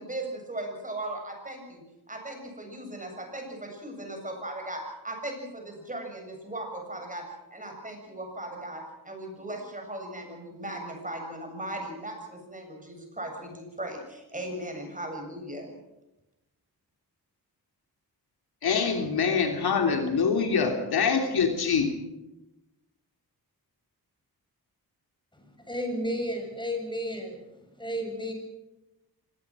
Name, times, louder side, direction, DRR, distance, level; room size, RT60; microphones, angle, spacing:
voice 1, 0.0-1.8 2.1-7.2 7.5-15.7, right 1 dB, 20° right, 3 dB, 7.5 m, -38 dB
voice 2, 18.6-21.8, left 5 dB, 80° left, 4 dB, 3.2 m, -24 dB
voice 3, 25.7-27.4 27.8-28.3, equal, 10° left, 4 dB, 6.9 m, -32 dB
24.5 x 20.0 x 6.3 m, 0.99 s
cardioid pair, 85°, 37 cm